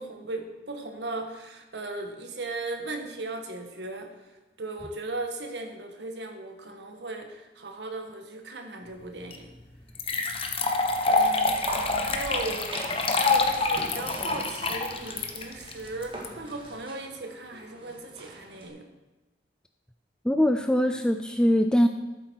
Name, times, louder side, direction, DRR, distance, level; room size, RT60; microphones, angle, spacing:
voice 1, 0.0-9.5 11.1-18.9, right 2 dB, 75° right, 4 dB, 1.4 m, -37 dB
sound 1, 9.3-9.4 10.0-16.3, left 3 dB, 35° left, 1.0 m, -26 dB
sound 2, 11.0-18.7, right 2 dB, 30° right, 1.7 m, -42 dB
voice 2, 20.2-21.9, equal, 5° left, 7 dB, 0.3 m, -22 dB
12.5 x 7.8 x 4.5 m, 1.1 s
head